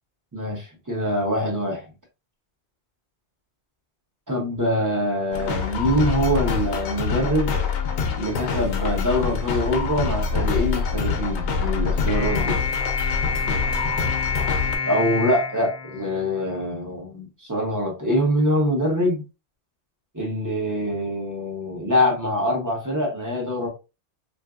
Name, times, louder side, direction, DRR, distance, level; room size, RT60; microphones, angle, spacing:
voice 1, 0.9-1.9 4.3-7.5 8.2-12.6 14.8-19.2 20.1-23.7, equal, 20° right, 0.9 m, -24 dB
sound 1, 5.3-14.8, left 5 dB, 70° left, 0.9 m, -25 dB
sound 2, 12.1-16.6, left 5 dB, 50° left, 0.6 m, -28 dB
3.7 x 2.6 x 2.3 m
omnidirectional pair, 1.2 m